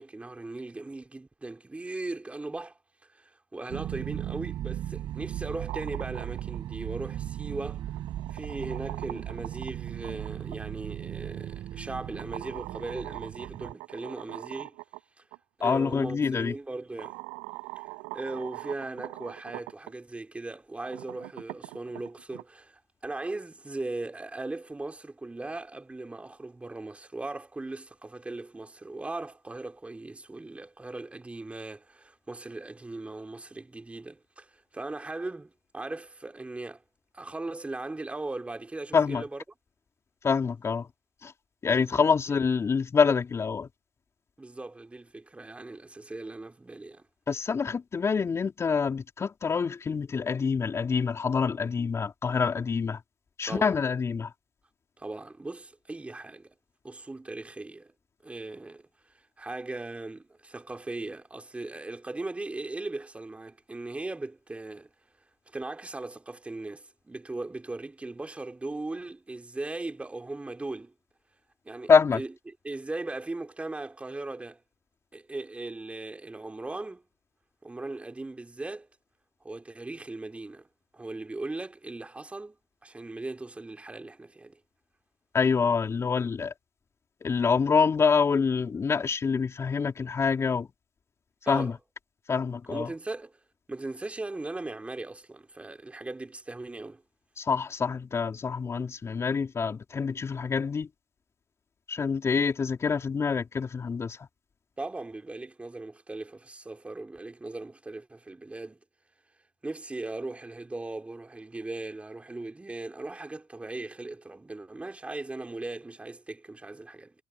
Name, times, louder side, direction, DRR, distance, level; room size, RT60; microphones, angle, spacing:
voice 1, 0.0-2.8 3.1-7.8 8.3-14.7 15.6-17.2 18.1-36.8 37.1-39.4 41.8-41.9 44.4-47.0 53.5-53.7 55.0-56.5 56.8-57.9 58.2-58.9 59.4-64.9 65.5-70.9 71.6-72.3 72.6-74.6 75.1-77.0 77.6-78.9 79.4-80.7 80.9-82.6 82.8-84.6 91.4-91.7 92.7-93.3 93.7-97.0 104.8-108.8 109.6-117.1, right 2 dB, 15° right, 3.5 m, -38 dB
sound 1, 3.7-13.7, right 12 dB, 55° right, 6.2 m, -37 dB
sound 2, 5.5-6.6 7.7-10.6 12.2-15.0 15.3-15.4 16.5-16.6 17.0-19.9 20.7-22.4, right 34 dB, 80° right, 7.7 m, -42 dB
voice 2, 15.6-16.5 38.9-39.2 40.2-40.9 41.2-41.3 41.6-43.7 47.3-53.0 53.4-54.3 71.9-72.2 85.3-86.5 87.2-90.7 91.4-91.7 92.3-92.9 97.4-100.9 101.9-104.3, left 5 dB, 30° left, 4.7 m, -26 dB
supercardioid pair, 80°, 9 cm